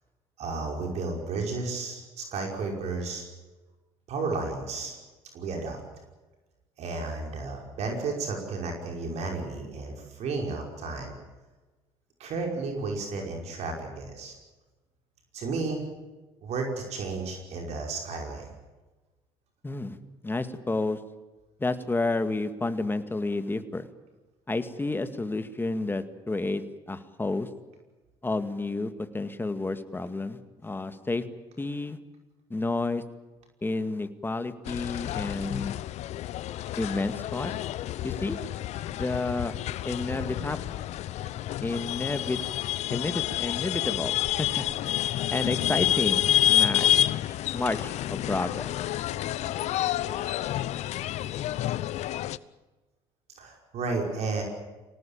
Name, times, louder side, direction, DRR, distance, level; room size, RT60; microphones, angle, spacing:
voice 1, 0.4-3.2 4.1-5.0 5.3-5.8 6.8-11.1 12.2-14.3 15.3-15.8 16.4-18.5 53.4-54.4, right 3 dB, 60° right, 2 dB, 5.4 m, -32 dB
voice 2, 19.6-20.0 20.2-21.0 21.6-23.9 24.5-27.5 28.2-31.3 31.6-32.0 32.5-33.0 33.6-35.7 36.8-37.5 38.0-38.4 38.9-39.5 39.8-40.6 41.6-42.4 42.9-45.0 45.3-46.9 47.5-48.7, left 2 dB, 15° left, 10 dB, 2.1 m, -30 dB
sound 1, 34.7-52.4, left 13 dB, 60° left, 0.8 m, -29 dB
25.5 x 18.5 x 8.8 m, 1.2 s
hypercardioid pair, 70°, 13 cm